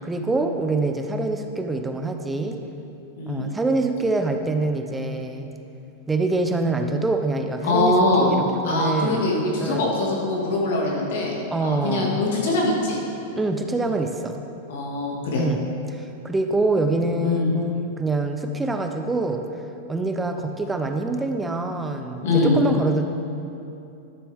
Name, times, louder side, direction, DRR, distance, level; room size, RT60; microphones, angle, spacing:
voice 1, 0.0-2.6 3.3-5.5 6.1-9.3 9.6-9.9 11.5-12.2 13.4-14.4 15.4-19.4 19.9-23.1, right 2 dB, 10° right, 5 dB, 0.7 m, -25 dB
voice 2, 3.2-3.5 7.6-8.3 8.6-13.0 14.7-15.4 17.2-17.5 22.2-22.6, left 2 dB, 75° left, -2 dB, 2.2 m, -23 dB
12.5 x 6.8 x 3.6 m, 2.7 s
hypercardioid pair, 130°, 0 cm